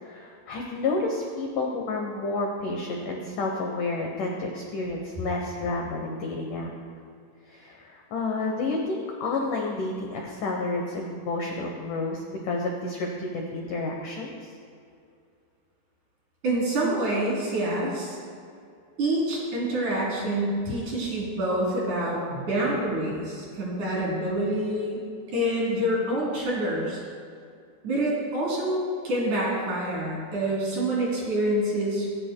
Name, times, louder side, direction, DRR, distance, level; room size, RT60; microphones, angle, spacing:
voice 1, 0.0-6.7 7.5-14.5, left 3 dB, 70° left, 0 dB, 2.0 m, -30 dB
voice 2, 16.4-18.2 19.0-25.0 25.3-27.0 27.8-28.8 29.0-32.1, right 1 dB, 50° right, -5 dB, 4.1 m, -27 dB
26.5 x 11.0 x 2.2 m, 2.4 s
omnidirectional pair, 5.0 m